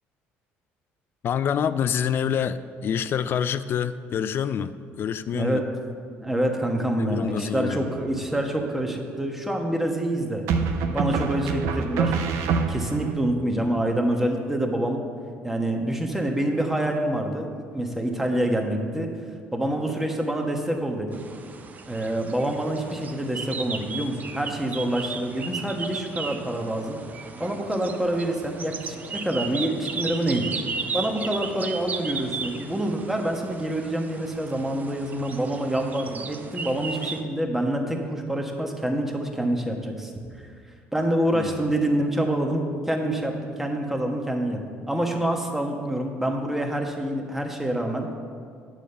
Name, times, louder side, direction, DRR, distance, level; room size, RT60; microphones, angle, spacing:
voice 1, 1.2-5.6 7.0-7.9 41.3-41.6, left 8 dB, 50° left, 13 dB, 0.4 m, -27 dB
voice 2, 5.3-5.7 6.2-10.5 10.9-15.0 15.4-19.1 19.5-21.2 21.9-27.0 27.4-30.5 30.9-40.1 40.9-48.1, right 1 dB, 5° right, 2 dB, 1.2 m, -26 dB
sound 1, 7.8-8.4 10.5-13.1, right 5 dB, 80° right, 0.7 m, -26 dB
sound 2, 21.1-37.2, right 4 dB, 35° right, 0.6 m, -35 dB
9.3 x 5.0 x 6.9 m, 2.1 s
cardioid pair, 100°, 5 cm